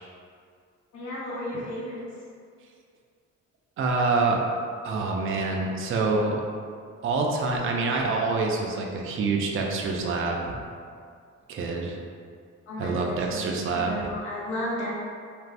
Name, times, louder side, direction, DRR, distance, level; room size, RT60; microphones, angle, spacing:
voice 1, 0.9-2.0 12.7-13.2 13.7-14.9, left 1 dB, 70° left, -6 dB, 0.9 m, -33 dB
voice 2, 3.8-4.4 4.8-6.4 7.0-10.6 11.5-12.0 12.8-14.1, right 3 dB, 45° right, 0 dB, 0.5 m, -26 dB
2.5 x 2.4 x 3.3 m, 2.2 s
cardioid pair, 90°, 30 cm